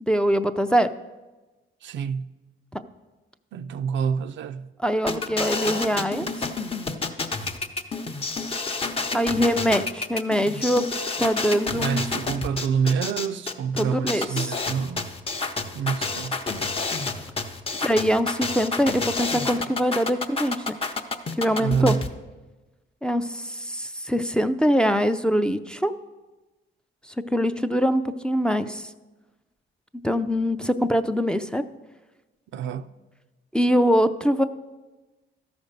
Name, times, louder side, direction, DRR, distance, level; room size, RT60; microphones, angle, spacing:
voice 1, 0.0-0.9 2.7-2.8 4.8-6.3 9.1-10.8 11.2-12.1 13.8-14.5 17.8-20.8 21.4-22.0 23.0-25.9 27.3-28.8 30.0-31.6 33.5-34.4, equal, 5° left, 0.4 m, -23 dB
voice 2, 1.8-2.3 3.5-4.7 6.2-6.3 11.7-15.1 15.7-16.4 19.1-19.2 21.6-22.1 32.5-32.9, right 6 dB, 70° right, 0.5 m, -27 dB
sound 1, 5.1-22.1, left 3 dB, 30° left, 0.8 m, -29 dB
13.0 x 5.2 x 6.6 m
cardioid pair, 90°, 20 cm